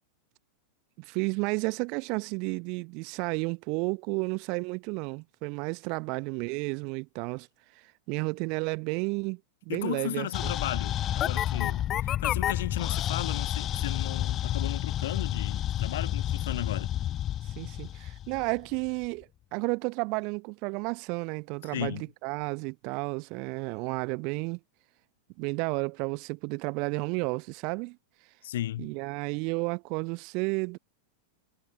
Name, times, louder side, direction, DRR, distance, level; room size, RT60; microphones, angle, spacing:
voice 1, 1.0-7.5 8.1-9.4 9.6-10.5 17.6-24.6 25.4-28.0 28.8-30.8, right 31 dB, 45° right, 1.1 m, -32 dB
voice 2, 9.7-16.9 21.7-22.0 28.4-28.9, left 13 dB, 60° left, 1.0 m, -35 dB
sound 1, 10.3-18.9, left 12 dB, 30° left, 0.5 m, -30 dB
figure-of-eight pair, 90°, 0 cm